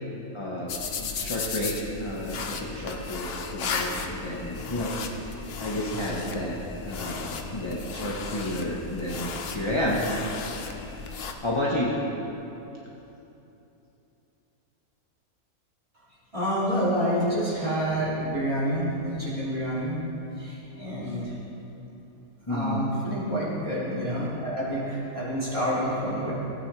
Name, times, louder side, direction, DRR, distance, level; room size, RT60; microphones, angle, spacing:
voice 1, 0.3-10.1 10.6-10.7 11.4-11.9 22.5-22.9, left 1 dB, 20° left, -5 dB, 1.0 m, -31 dB
sound 1, 0.7-11.3, left 5 dB, 50° left, 0.8 m, -35 dB
voice 2, 16.3-20.0 20.4-21.4 22.5-26.3, equal, 20° right, -9 dB, 3.0 m, -28 dB
16.5 x 9.3 x 3.3 m, 3.0 s
omnidirectional pair, 1.6 m